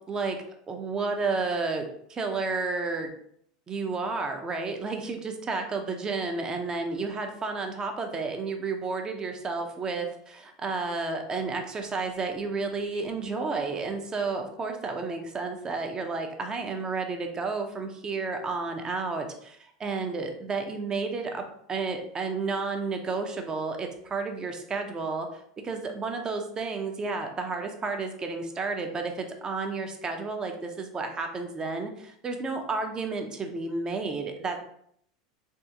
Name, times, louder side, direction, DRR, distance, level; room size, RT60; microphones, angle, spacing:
voice 1, 0.7-3.1 3.7-21.4 21.7-34.6, right 4 dB, 25° right, 4 dB, 0.6 m, -31 dB
3.5 x 2.4 x 2.8 m, 0.68 s
supercardioid pair, 110°, 3 cm